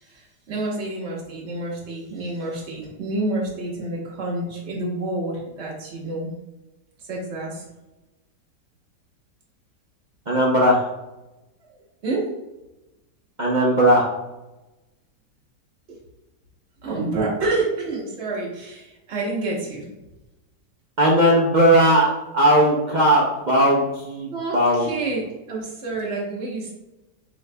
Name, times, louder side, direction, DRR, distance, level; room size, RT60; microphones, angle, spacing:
voice 1, 0.5-6.3 7.1-7.6 12.0-12.3 15.9-16.0 16.8-19.8 24.3-26.7, right 2 dB, 40° right, -4 dB, 1.5 m, -28 dB
voice 2, 10.3-10.9 13.4-14.1 21.0-22.1 22.3-24.9, equal, 60° right, -4 dB, 0.4 m, -17 dB
7.3 x 3.2 x 2.2 m, 1.0 s
omnidirectional pair, 1.9 m